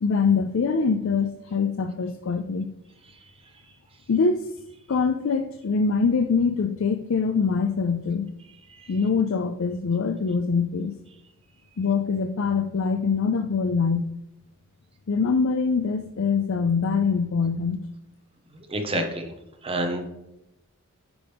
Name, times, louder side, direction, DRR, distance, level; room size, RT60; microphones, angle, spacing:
voice 1, 0.0-2.7 4.1-4.5 4.9-8.3 8.9-11.0 11.8-14.1 15.1-17.8, left 5 dB, 65° left, 8 dB, 0.4 m, -24 dB
voice 2, 18.5-19.3 19.6-20.0, right 1 dB, 25° right, 4 dB, 1.1 m, -29 dB
9.9 x 5.0 x 3.5 m, 0.86 s
head